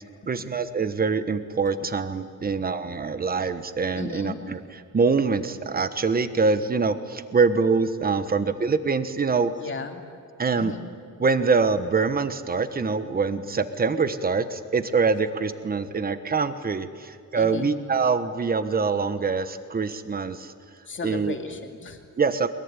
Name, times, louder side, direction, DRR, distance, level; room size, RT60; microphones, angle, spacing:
voice 1, 0.3-4.6 4.9-9.5 10.4-10.7 11.2-20.5 21.0-21.4 22.2-22.5, right 4 dB, 30° right, 11 dB, 1.2 m, -24 dB
voice 2, 4.0-4.4 9.4-10.0 10.6-10.8 17.3-17.8 20.9-22.0, left 4 dB, 40° left, 4 dB, 2.5 m, -35 dB
22.5 x 21.5 x 9.8 m, 2.2 s
wide cardioid pair, 145°, 32 cm